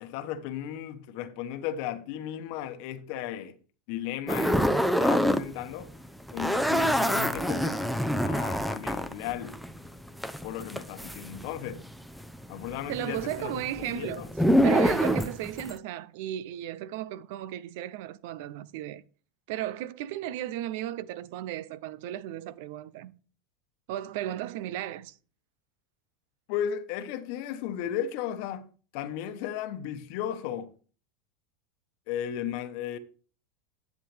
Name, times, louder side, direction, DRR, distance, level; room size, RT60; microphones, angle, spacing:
voice 1, 0.0-3.5 3.9-5.9 6.3-7.8 8.2-9.6 10.4-11.8 12.5-14.3 26.5-28.7 28.9-30.7 32.1-33.0, left 10 dB, 60° left, 1.1 m, -35 dB
sound 1, 4.3-5.4 5.7-11.9 12.2-15.8, equal, ahead, 0.7 m, -26 dB
voice 2, 12.9-14.3 14.6-19.0 19.5-23.1 23.9-25.2, right 13 dB, 65° right, 0.6 m, -35 dB
10.5 x 7.3 x 3.4 m
hypercardioid pair, 105°, 0 cm